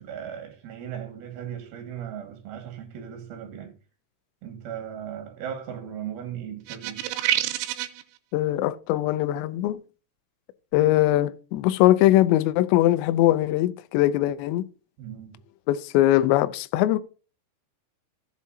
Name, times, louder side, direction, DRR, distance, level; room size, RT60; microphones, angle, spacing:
voice 1, 0.0-3.7 4.4-7.0 15.0-15.4, right 9 dB, 55° right, 3.3 m, -37 dB
sound 1, 6.7-8.0, right 13 dB, 85° right, 3.3 m, -27 dB
voice 2, 8.3-9.8 10.7-14.7 15.7-17.0, left 14 dB, 90° left, 2.5 m, -21 dB
14.5 x 7.3 x 2.7 m
omnidirectional pair, 5.8 m